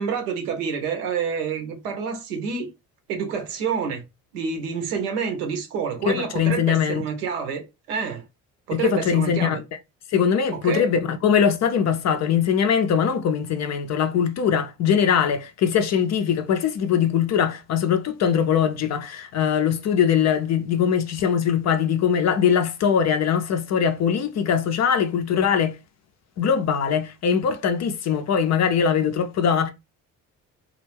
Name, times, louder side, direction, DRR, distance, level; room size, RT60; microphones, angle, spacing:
voice 1, 0.0-2.7 3.1-4.0 4.3-7.6 7.9-8.2 8.7-9.6 10.5-10.9, right 6 dB, 80° right, 0.7 m, -28 dB
voice 2, 6.1-7.0 8.7-9.6 10.1-25.8 26.4-29.7, left 7 dB, 40° left, 0.4 m, -21 dB
2.3 x 2.0 x 3.2 m
figure-of-eight pair, 45°, 47 cm